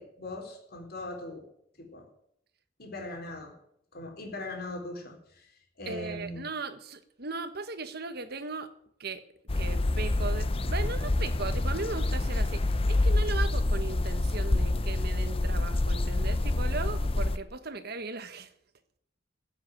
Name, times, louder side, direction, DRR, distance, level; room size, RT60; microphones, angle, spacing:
voice 1, 0.0-1.4 1.8-2.1 2.8-3.5 3.9-5.5 5.8-6.4, left 2 dB, 55° left, 2 dB, 4.1 m, -40 dB
voice 2, 5.8-8.7 9.0-9.2 9.6-18.5, right 3 dB, 55° right, 10 dB, 1.4 m, -37 dB
sound 1, 9.5-17.4, left 2 dB, 30° left, 0.6 m, -27 dB
15.0 x 7.7 x 9.1 m, 0.72 s
head